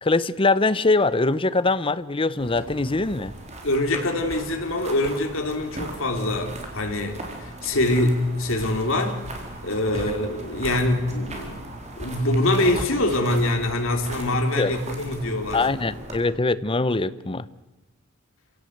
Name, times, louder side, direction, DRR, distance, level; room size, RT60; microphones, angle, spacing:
voice 1, 0.0-3.3 9.9-10.0 14.6-14.7 15.5-17.4, left 3 dB, 25° left, 15 dB, 0.7 m, -22 dB
sound 1, 2.4-16.2, right 1 dB, 35° right, 3.9 m, -38 dB
voice 2, 3.6-9.2 9.6-15.7, left 1 dB, 70° left, 3 dB, 3.1 m, -24 dB
27.5 x 17.5 x 8.0 m, 1.1 s
head